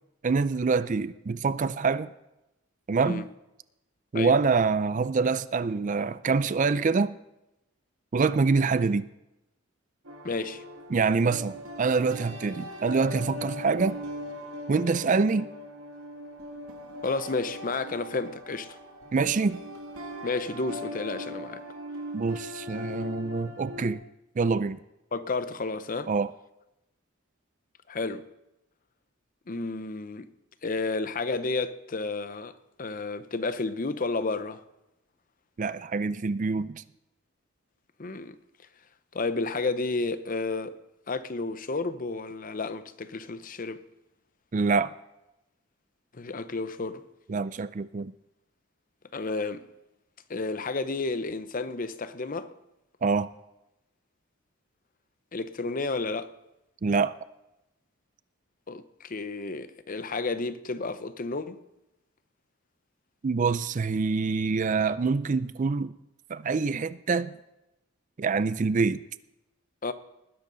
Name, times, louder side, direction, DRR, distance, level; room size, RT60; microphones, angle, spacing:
voice 1, 0.2-2.1 2.9-3.2 4.1-7.2 8.1-9.1 10.9-14.0 14.7-15.5 19.1-19.6 22.1-24.0 24.4-24.8 26.1-26.3 35.6-36.8 44.5-44.9 47.3-48.1 53.0-53.3 56.8-57.1 63.2-65.9 66.3-67.4 68.2-69.0, right 4 dB, 40° right, 0.4 m, -25 dB
sound 1, 10.0-23.9, left 1 dB, 90° right, 2.1 m, -40 dB
voice 2, 10.2-10.6 17.0-18.8 20.2-21.6 25.1-26.1 27.9-28.3 29.5-30.3 30.6-34.6 38.0-38.4 39.1-40.8 41.1-43.8 46.1-47.0 49.1-49.7 50.3-52.5 55.3-56.3 58.7-61.6 69.8-69.9, left 3 dB, 40° left, 0.7 m, -31 dB
19.5 x 11.0 x 3.9 m
head